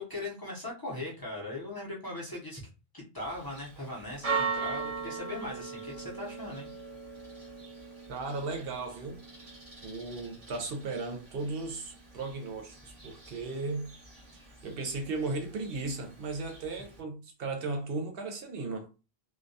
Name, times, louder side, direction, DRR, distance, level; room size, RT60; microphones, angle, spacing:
voice 1, 0.0-2.6 2.9-6.7, left 2 dB, 25° left, 0.6 m, -39 dB
Church bell, 3.2-17.0, right 5 dB, 35° right, 0.9 m, -40 dB
voice 2, 8.1-9.2 9.8-13.9 14.6-18.9, right 3 dB, 65° right, 0.8 m, -36 dB
2.2 x 2.2 x 2.6 m
omnidirectional pair, 1.1 m